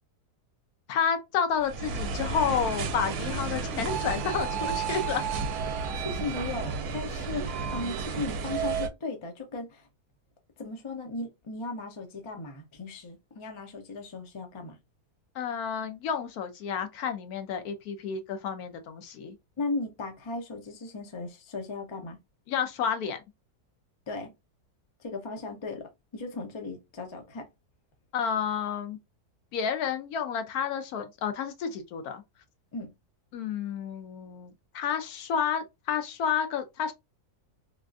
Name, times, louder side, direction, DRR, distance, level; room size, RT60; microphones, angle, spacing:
voice 1, 0.9-5.2 15.4-19.3 22.5-23.2 28.1-29.0 29.5-32.2 33.3-36.9, left 7 dB, 75° left, 1.1 m, -30 dB
sound 1, 1.6-8.9, right 5 dB, 75° right, 1.1 m, -32 dB
voice 2, 6.0-9.9 10.6-14.8 19.6-22.2 24.1-24.3 25.0-27.5 32.7-32.9, left 3 dB, 45° left, 0.4 m, -36 dB
3.4 x 2.4 x 2.4 m
omnidirectional pair, 1.7 m